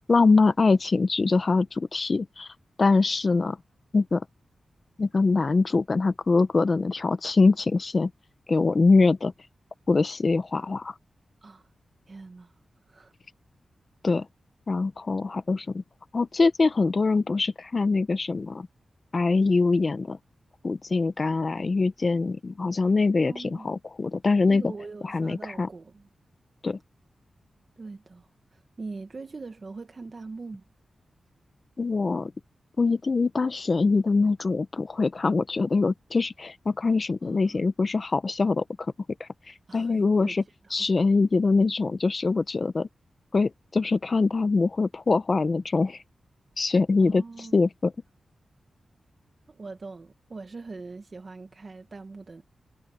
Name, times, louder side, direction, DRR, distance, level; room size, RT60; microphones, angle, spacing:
voice 1, 0.1-2.5 2.8-3.6 3.9-4.2 5.0-8.1 8.5-9.3 9.9-10.9 14.0-14.3 14.7-15.8 16.1-18.7 19.1-20.2 20.6-24.6 25.0-25.7 26.6-26.8 31.8-32.3 32.8-38.6 39.2-40.4 40.7-42.9 43.3-46.0 46.6-47.2 47.5-47.9, left 3 dB, 40° left, 0.7 m, -23 dB
voice 2, 12.1-12.5 12.9-13.1 23.2-23.7 24.5-26.1 27.8-30.6 37.2-37.6 39.7-40.4 40.6-40.9 47.0-47.6 49.5-52.4, right 3 dB, 40° right, 1.5 m, -42 dB
wide cardioid pair, 130°, 0 cm